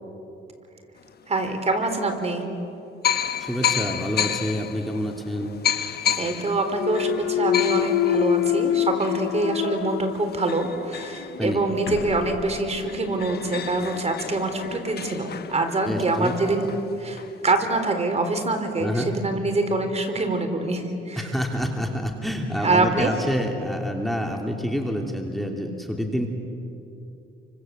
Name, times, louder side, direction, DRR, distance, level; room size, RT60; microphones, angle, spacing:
sound 1, 1.3-1.4 2.3-2.4 3.0-12.2 12.6-12.7 12.9-17.5, left 9 dB, 55° left, 1.3 m, -31 dB
voice 1, 1.3-2.4 6.2-21.3 22.6-23.1, right 2 dB, 35° right, 6 dB, 4.2 m, -25 dB
voice 2, 3.4-5.5 11.4-11.6 15.8-16.3 18.8-19.1 21.2-26.3, equal, ahead, 2 dB, 2.9 m, -27 dB
Thump thud, 6.7-10.7 11.2-15.9, left 12 dB, 75° left, 0.9 m, -28 dB
30.0 x 25.5 x 7.8 m, 2.8 s
cardioid pair, 90°, 20 cm